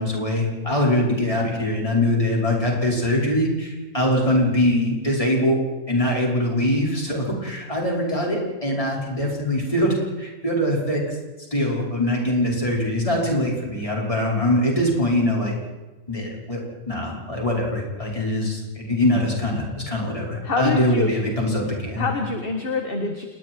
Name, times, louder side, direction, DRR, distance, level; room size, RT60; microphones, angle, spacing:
voice 1, 0.0-5.6 5.9-11.2 11.5-15.6 16.1-16.6 16.9-22.0, left 1 dB, 25° left, -2 dB, 5.7 m, -23 dB
voice 2, 20.4-21.1 22.0-23.3, left 4 dB, 40° left, 4 dB, 1.9 m, -26 dB
28.5 x 21.0 x 4.7 m, 1.2 s
omnidirectional pair, 1.5 m